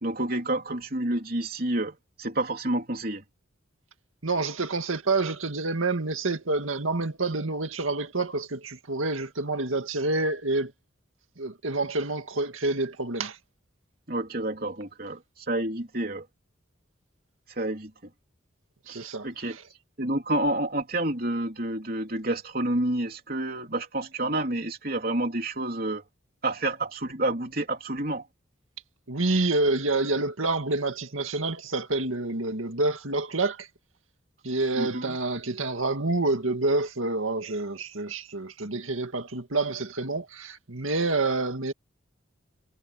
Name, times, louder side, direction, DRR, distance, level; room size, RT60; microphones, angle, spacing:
voice 1, 0.0-3.2 14.1-16.3 17.5-17.9 18.9-19.6 20.0-26.0 26.4-28.3 34.7-35.2, right 1 dB, 45° right, 3.6 m, -29 dB
voice 2, 4.2-10.7 11.4-13.4 18.9-19.6 29.1-33.7 34.4-41.7, right 2 dB, 85° right, 2.1 m, -28 dB
head